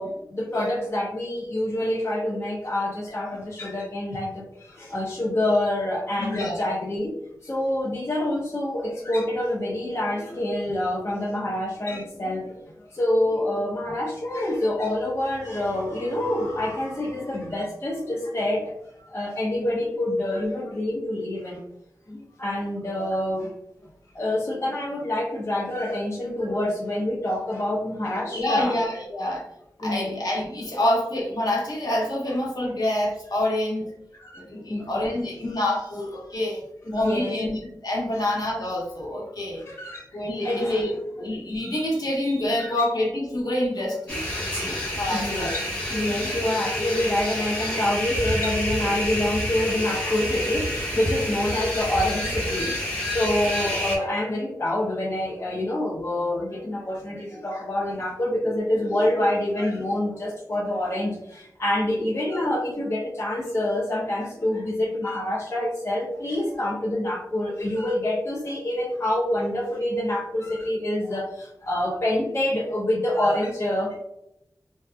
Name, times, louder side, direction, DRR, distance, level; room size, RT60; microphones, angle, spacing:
voice 1, 0.0-7.1 7.4-12.6 12.9-18.7 19.1-21.6 22.1-23.5 24.1-28.7 29.8-30.2 34.2-35.0 36.9-37.4 39.7-40.0 40.4-40.9 42.5-42.8 45.1-74.0, left 1 dB, 40° left, -3 dB, 0.5 m, -27 dB
voice 2, 6.2-6.6 28.3-29.5 29.8-33.9 34.3-36.6 36.9-39.6 40.1-45.6, left 1 dB, 60° left, -3 dB, 0.8 m, -27 dB
sound 1, 44.1-54.0, equal, 15° left, 0.9 m, -28 dB
2.6 x 2.3 x 2.3 m, 0.80 s
wide cardioid pair, 90°, 7 cm